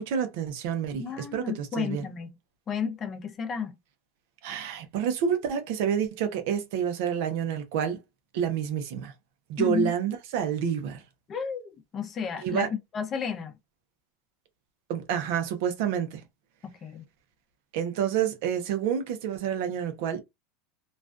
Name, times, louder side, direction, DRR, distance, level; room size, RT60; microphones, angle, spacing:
voice 1, 0.0-2.0 4.4-8.0 8.3-9.1 9.5-11.0 12.4-12.7 14.9-16.2 17.7-20.2, right 8 dB, 70° right, 0.7 m, -28 dB
voice 2, 1.0-2.3 2.7-3.7 9.6-9.9 11.3-12.6 12.9-13.5 16.6-17.1, left 6 dB, 30° left, 0.6 m, -32 dB
2.4 x 2.2 x 2.4 m
supercardioid pair, 115°, 0 cm